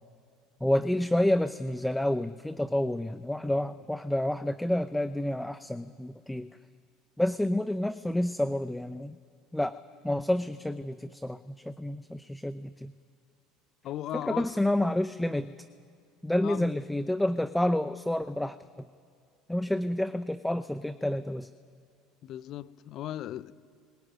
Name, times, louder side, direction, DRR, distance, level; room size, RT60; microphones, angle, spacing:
voice 1, 0.6-6.5 7.2-9.1 9.5-9.8 10.0-12.9 14.1-15.5 16.2-18.6 19.5-21.5, left 1 dB, 5° left, 0.8 m, -29 dB
voice 2, 13.8-14.5 16.4-16.7 22.2-23.5, left 12 dB, 55° left, 0.8 m, -37 dB
23.0 x 19.5 x 9.2 m
hypercardioid pair, 85°, 0 cm